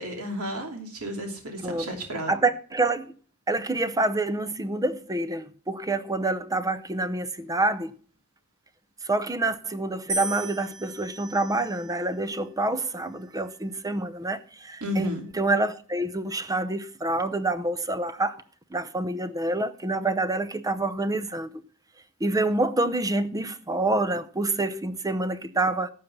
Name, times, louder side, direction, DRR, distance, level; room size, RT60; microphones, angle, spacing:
voice 1, 0.0-2.3 14.8-15.2, equal, 75° right, 2.8 m, -32 dB
voice 2, 2.3-3.1 3.5-7.9 9.0-18.4 18.7-21.5 22.2-25.9, right 2 dB, 15° right, 0.7 m, -27 dB
sound 1, 10.1-12.3 13.1-13.6, right 2 dB, 55° right, 4.7 m, -36 dB
12.0 x 7.3 x 6.9 m
head